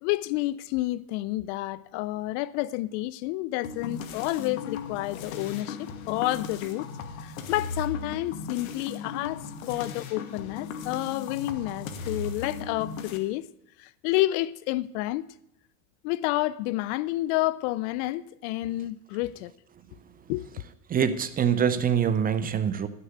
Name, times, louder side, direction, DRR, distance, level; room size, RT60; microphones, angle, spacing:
voice 1, 0.0-6.9 7.2-13.4 13.8-15.2 16.0-19.5 20.3-20.5, left 17 dB, 60° left, 0.5 m, -29 dB
sound 1, 3.6-13.2, left 5 dB, 85° left, 1.3 m, -37 dB
voice 2, 20.9-22.9, right 8 dB, 20° right, 0.6 m, -24 dB
10.5 x 6.8 x 8.5 m
supercardioid pair, 120°, 40 cm